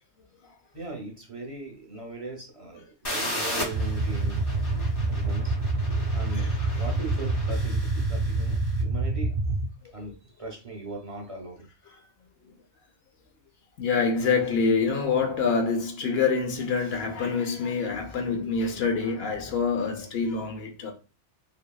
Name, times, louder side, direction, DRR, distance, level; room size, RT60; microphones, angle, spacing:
voice 1, 0.7-4.4 5.1-5.5 5.8-5.9 6.1-9.5 9.9-11.7, right 2 dB, 45° right, 0.4 m, -39 dB
sound 1, 3.0-8.7, left 1 dB, 25° left, 0.6 m, -36 dB
sound 2, 3.7-9.7, right 2 dB, 60° right, 0.8 m, -27 dB
voice 2, 4.5-4.9 5.9-6.4 6.7-6.8 10.0-10.1 13.8-20.9, left 5 dB, 60° left, 0.8 m, -27 dB
2.8 x 2.7 x 2.2 m
omnidirectional pair, 1.2 m